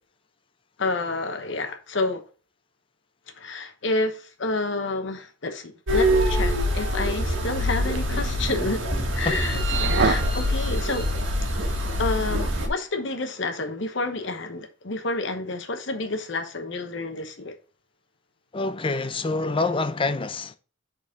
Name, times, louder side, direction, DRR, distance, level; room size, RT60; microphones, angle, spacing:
voice 1, 0.8-2.2 3.4-8.8 9.2-9.6 10.0-11.1 12.0-17.5, left 2 dB, 70° left, 1.0 m, -29 dB
sound 1, 5.9-12.7, equal, 90° right, 1.7 m, -24 dB
sound 2, 6.6-11.5, right 4 dB, 70° right, 0.6 m, -32 dB
voice 2, 18.5-20.6, left 3 dB, 30° left, 0.5 m, -26 dB
6.0 x 4.2 x 5.1 m
head